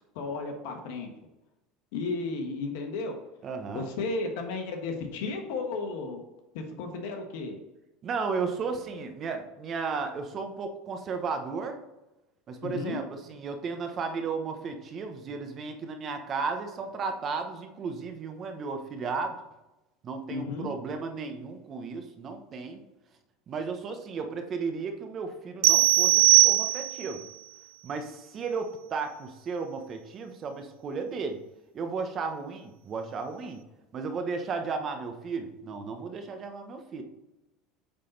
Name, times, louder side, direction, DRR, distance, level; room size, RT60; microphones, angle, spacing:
voice 1, 0.1-1.1 1.9-3.2 3.7-6.2 6.5-7.6 12.6-13.0 20.3-20.7, left 3 dB, 75° left, 4 dB, 1.4 m, -33 dB
voice 2, 3.4-3.9 8.0-11.8 12.5-19.4 20.0-22.8 23.5-27.2 27.8-31.4 31.7-33.6 33.9-37.0, right 4 dB, 40° right, 6 dB, 1.1 m, -34 dB
sound 1, 25.6-27.2, right 18 dB, 75° right, 0.4 m, -20 dB
8.8 x 4.1 x 4.0 m, 1.0 s
supercardioid pair, 110°, 0 cm